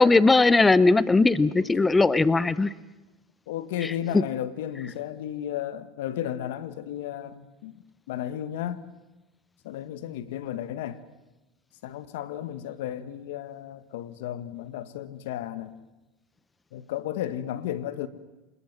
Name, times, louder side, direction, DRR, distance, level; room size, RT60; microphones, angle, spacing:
voice 1, 0.0-2.7 3.8-4.2, left 3 dB, 15° left, 0.8 m, -19 dB
voice 2, 3.5-7.7 8.1-8.8 9.6-11.0 11.8-15.7 16.7-18.1, left 11 dB, 80° left, 1.6 m, -33 dB
26.5 x 21.0 x 7.6 m
supercardioid pair, 105°, 0 cm